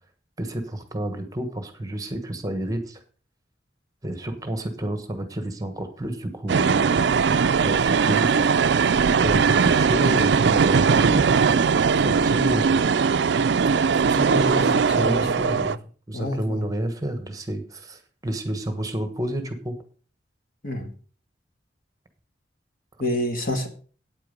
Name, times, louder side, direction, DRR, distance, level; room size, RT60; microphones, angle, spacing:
voice 1, 0.4-3.0 4.0-7.4 7.6-8.3 9.2-11.3 11.5-12.8 14.0-15.8 16.1-19.7, right 1 dB, 20° right, 8 dB, 1.3 m, -30 dB
sound 1, 6.5-15.8, right 5 dB, 70° right, 0.4 m, -20 dB
voice 2, 14.3-15.2 15.5-15.8 16.1-16.6 20.6-20.9 23.0-23.7, left 1 dB, 50° left, 5 dB, 1.7 m, -28 dB
9.0 x 8.9 x 5.2 m, 0.40 s
head